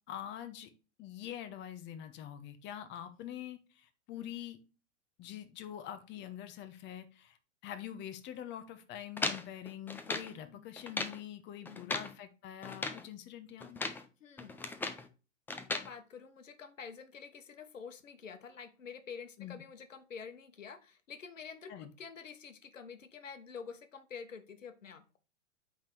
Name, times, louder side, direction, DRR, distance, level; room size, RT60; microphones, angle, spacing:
voice 1, 0.1-0.7 1.0-4.6 5.2-7.4 7.6-13.8 19.4-19.6 21.7-21.9, left 11 dB, 30° left, 9 dB, 1.0 m, -45 dB
sound 1, 9.2-10.3 10.8-11.2 11.7-12.1 12.6-13.1 13.6-14.1 14.4-15.1 15.5-15.9, left 3 dB, 5° left, 0.4 m, -37 dB
voice 2, 11.6-12.0 14.2-14.6 15.7-25.2, left 6 dB, 85° left, 10 dB, 1.3 m, -48 dB
8.6 x 3.8 x 4.5 m, 0.32 s
hypercardioid pair, 115°, 38 cm